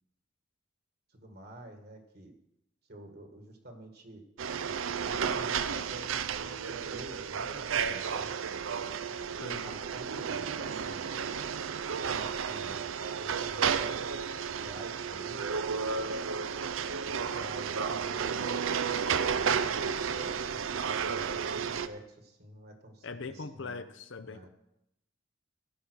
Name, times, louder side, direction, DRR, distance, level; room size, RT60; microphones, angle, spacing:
voice 1, 1.1-2.3 2.9-4.2 5.1-8.6 9.3-11.1 12.0-13.8 14.5-15.8 17.3-18.7 20.1-23.9 24.2-24.5, right 1 dB, 50° right, 5 dB, 1.8 m, -48 dB
sound 1, 4.4-21.9, right 6 dB, 80° right, 0.5 m, -32 dB
voice 2, 9.4-9.8 23.0-24.5, left 4 dB, 65° left, 12 dB, 0.7 m, -41 dB
15.5 x 5.6 x 6.3 m, 0.82 s
head